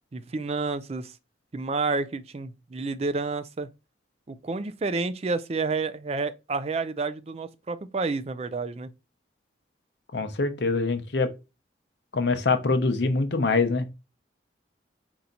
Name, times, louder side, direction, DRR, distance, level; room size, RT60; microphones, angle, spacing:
voice 1, 0.1-1.1 1.5-3.7 4.3-8.9, right 3 dB, 35° right, 0.4 m, -30 dB
voice 2, 10.1-11.3 12.1-13.9, left 3 dB, 65° left, 0.7 m, -24 dB
4.5 x 2.8 x 3.9 m
head